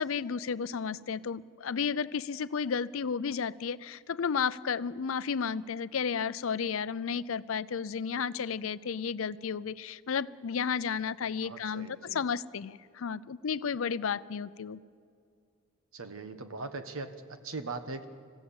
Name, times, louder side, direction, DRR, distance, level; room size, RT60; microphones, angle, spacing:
voice 1, 0.0-14.8, left 6 dB, 70° left, 17 dB, 0.5 m, -32 dB
voice 2, 11.4-12.2 15.9-18.1, right 3 dB, 75° right, 9 dB, 1.4 m, -40 dB
26.0 x 15.5 x 7.1 m, 2.3 s
head